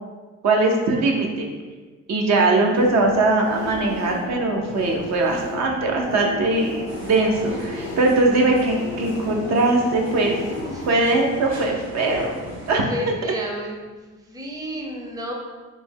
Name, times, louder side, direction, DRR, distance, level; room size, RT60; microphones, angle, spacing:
voice 1, 0.4-1.5 2.1-10.4 10.9-12.3 12.7-12.8, right 2 dB, 60° right, 1 dB, 0.6 m, -20 dB
sound 1, 2.7-11.0, left 3 dB, 90° left, 0.6 m, -35 dB
sound 2, 6.9-12.8, right 1 dB, 40° right, 1.1 m, -37 dB
voice 2, 12.9-15.3, equal, 10° right, -1 dB, 0.5 m, -32 dB
3.2 x 2.1 x 3.4 m, 1.3 s
cardioid pair, 90°, 30 cm